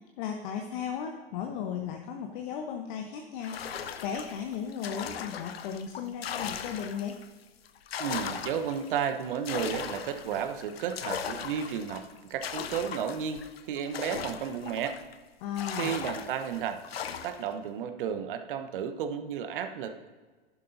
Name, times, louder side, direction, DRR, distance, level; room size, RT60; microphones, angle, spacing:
voice 1, 0.2-7.1 15.4-15.9, left 7 dB, 55° left, 3 dB, 1.1 m, -36 dB
sound 1, 3.4-7.3 7.7-15.2 15.6-17.5, left 8 dB, 80° left, 0.7 m, -38 dB
voice 2, 8.0-15.0 15.8-16.8 17.2-20.1, right 8 dB, 60° right, 9 dB, 1.0 m, -33 dB
11.0 x 11.0 x 2.7 m, 1.4 s
hypercardioid pair, 100°, 30 cm